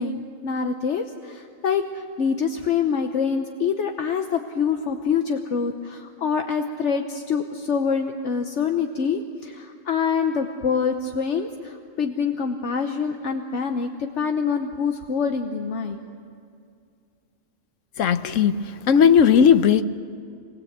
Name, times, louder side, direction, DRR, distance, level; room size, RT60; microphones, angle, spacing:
voice 1, 0.0-16.0, left 6 dB, 70° left, 5 dB, 1.2 m, -25 dB
voice 2, 18.0-19.8, left 7 dB, 90° left, 12 dB, 1.2 m, -17 dB
26.0 x 20.0 x 8.0 m, 2.3 s
omnidirectional pair, 1.3 m